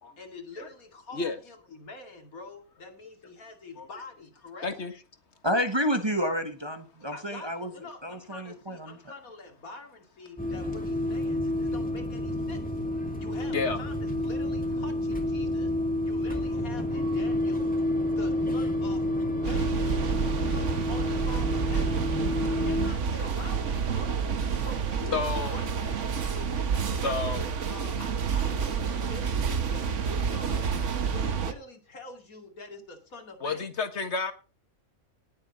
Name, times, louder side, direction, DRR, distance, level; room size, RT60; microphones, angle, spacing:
voice 1, 0.2-4.7 7.1-12.6 13.2-15.8 16.1-17.8 18.1-22.1 22.4-24.2 24.6-25.2 25.5-26.0 26.3-33.7, left 3 dB, 85° left, 2.9 m, -45 dB
voice 2, 4.6-4.9 13.5-13.8 22.3-22.4 25.1-25.6 27.0-27.4 33.4-34.3, left 4 dB, 55° left, 1.9 m, -30 dB
voice 3, 5.4-7.7 8.0-9.0, equal, 20° right, 1.0 m, -29 dB
sound 1, 10.4-22.9, left 1 dB, 5° left, 2.2 m, -29 dB
sound 2, 19.4-31.5, right 6 dB, 60° right, 1.4 m, -29 dB
19.0 x 7.4 x 4.1 m
omnidirectional pair, 1.4 m